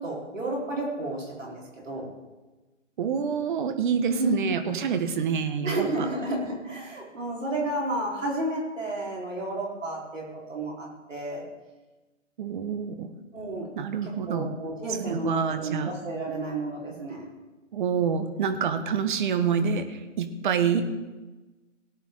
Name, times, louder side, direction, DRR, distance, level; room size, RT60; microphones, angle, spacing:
voice 1, 0.0-2.0 4.1-4.4 5.6-11.4 13.3-13.7 14.0-17.3, right 1 dB, 80° right, -3 dB, 4.0 m, -32 dB
voice 2, 3.0-5.9 12.4-13.1 13.8-14.5 15.1-15.9 17.7-20.8, right 6 dB, 40° right, 8 dB, 1.2 m, -27 dB
18.0 x 8.9 x 3.7 m, 1.2 s
figure-of-eight pair, 135°, 37 cm